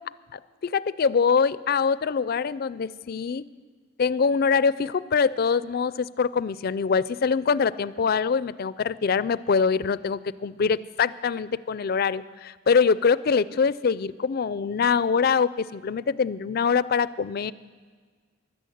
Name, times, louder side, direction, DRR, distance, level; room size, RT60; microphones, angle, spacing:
voice 1, 0.3-3.4 4.0-17.5, left 5 dB, 50° left, 18 dB, 0.4 m, -24 dB
15.0 x 11.5 x 7.9 m, 1.5 s
head